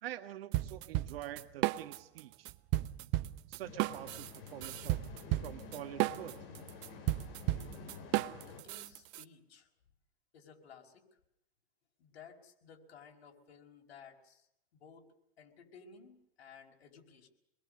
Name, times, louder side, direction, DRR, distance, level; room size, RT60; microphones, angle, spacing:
voice 1, 0.0-2.5 3.5-5.0 5.4-6.3, right 13 dB, 70° right, 9 dB, 1.7 m, -46 dB
sound 1, 0.5-2.2 2.5-9.2, right 17 dB, 35° right, 0.9 m, -34 dB
sound 2, 3.6-8.6, left 5 dB, 40° left, 4.8 m, -50 dB
voice 2, 8.4-9.7 10.3-11.0 12.0-14.5 14.7-15.0 15.4-17.3, left 6 dB, 80° left, 2 dB, 5.4 m, -56 dB
27.0 x 21.5 x 6.5 m, 0.79 s
hypercardioid pair, 135°, 31 cm